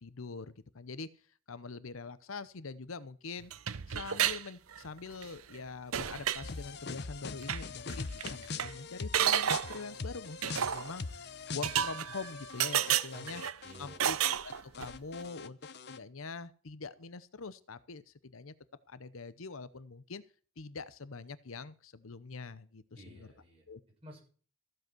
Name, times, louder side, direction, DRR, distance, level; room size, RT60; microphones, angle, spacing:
voice 1, 0.0-1.1 1.5-3.5 3.9-13.4 13.8-14.2 14.4-15.6 15.9-18.5 18.9-20.2 20.6-23.3 23.7-23.8, left 4 dB, 80° left, 16 dB, 0.8 m, -44 dB
sound 1, 3.5-4.4 4.7-5.2 5.5-5.6 5.9-6.5 7.4-7.6 7.9-8.0 8.2-8.7 9.1-9.8 10.4-10.9 11.6-12.3 12.6-13.5 14.0-15.0, right 9 dB, 90° right, 0.7 m, -31 dB
sound 2, 6.4-14.0 14.2-16.0, left 4 dB, 50° left, 0.7 m, -42 dB
voice 2, 13.1-14.1 22.9-23.7 24.0-24.2, right 1 dB, 25° right, -1 dB, 7.0 m, -53 dB
15.0 x 7.9 x 6.2 m, 0.40 s
head